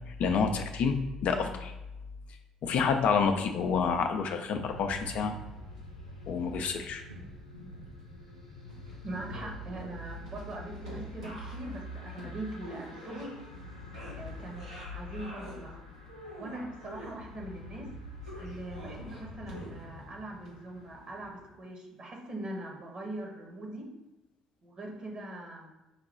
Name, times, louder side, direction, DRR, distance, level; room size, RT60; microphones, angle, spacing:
voice 1, 0.1-1.7 2.6-5.3 6.3-7.0, left 5 dB, 55° left, 6 dB, 0.5 m, -28 dB
sound 1, 4.3-5.8 7.0-8.4 8.7-13.6 13.9-15.6 16.0-17.2 18.2-20.0 20.5-20.6, equal, 85° right, 0.9 m, -47 dB
sound 2, 4.5-21.4, left 1 dB, 90° left, 0.7 m, -46 dB
voice 2, 9.0-13.5 14.2-15.8 16.4-17.9 18.4-23.9 24.6-25.7, right 1 dB, 40° right, 0 dB, 1.0 m, -41 dB
4.8 x 2.2 x 4.2 m, 0.98 s
figure-of-eight pair, 50°, 3 cm